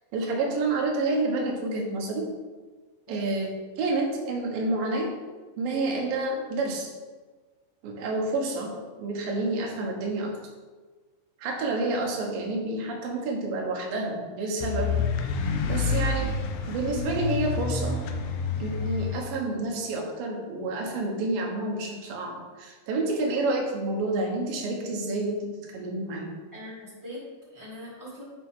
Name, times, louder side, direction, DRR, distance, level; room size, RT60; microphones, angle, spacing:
voice 1, 0.1-2.3 3.1-3.5 3.8-5.1 5.6-6.9 7.8-8.7 9.0-10.4 11.4-14.9 15.7-16.3 16.7-18.0 18.6-26.3, right 2 dB, 70° right, 0 dB, 2.7 m, -29 dB
sound 1, 14.6-19.2, left 5 dB, 80° left, 2.1 m, -28 dB
voice 2, 26.5-28.2, left 1 dB, 20° right, -5 dB, 0.4 m, -42 dB
10.5 x 4.5 x 3.7 m, 1.4 s
omnidirectional pair, 4.6 m